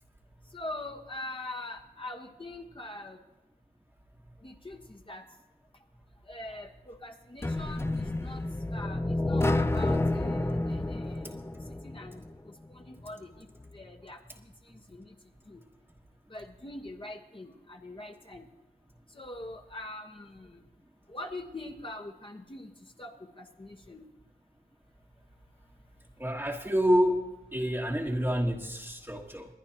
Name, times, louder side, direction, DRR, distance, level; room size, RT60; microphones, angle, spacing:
voice 1, 0.5-3.2 4.4-5.2 6.3-8.4 8.7-11.6 11.8-12.2 12.7-13.3 13.7-14.2 14.9-15.0 15.5-15.6 16.3-18.5 19.1-20.6 21.1-22.7 23.0-24.0, left 2 dB, 30° left, 2 dB, 1.3 m, -43 dB
sound 1, 7.4-12.3, left 2 dB, 15° left, 0.5 m, -29 dB
voice 2, 26.2-27.3 27.5-29.5, equal, 15° right, -1 dB, 1.3 m, -27 dB
21.5 x 10.5 x 2.9 m, 1.1 s
cardioid pair, 50°, 17 cm